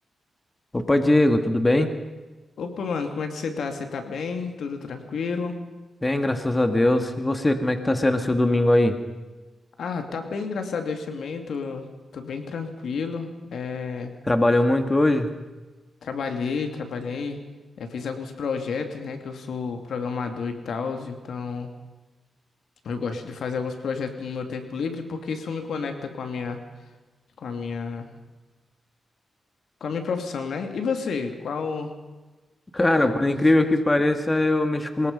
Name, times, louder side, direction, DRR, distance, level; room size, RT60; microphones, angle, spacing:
voice 1, 0.7-1.9 6.0-9.0 14.3-15.3 32.7-35.1, left 1 dB, 20° left, 7 dB, 1.9 m, -21 dB
voice 2, 2.6-5.6 9.8-11.9 12.1-14.1 16.0-17.4 17.8-21.7 22.8-26.6 27.4-28.1 29.8-31.9 32.9-33.4, left 5 dB, 75° left, 6 dB, 2.5 m, -30 dB
24.0 x 21.0 x 5.4 m, 1.2 s
cardioid pair, 80°, 0 cm